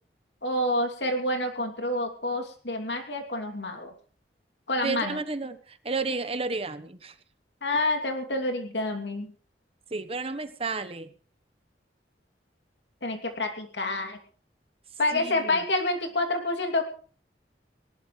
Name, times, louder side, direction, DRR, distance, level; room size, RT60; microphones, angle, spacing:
voice 1, 0.4-3.9 4.7-5.2 7.6-9.3 13.0-14.2 15.0-16.8, left 2 dB, 80° left, 4 dB, 2.9 m, -28 dB
voice 2, 4.8-7.1 9.9-11.1 15.1-15.6, right 3 dB, 35° right, 11 dB, 1.1 m, -32 dB
20.0 x 18.0 x 3.3 m, 0.42 s
head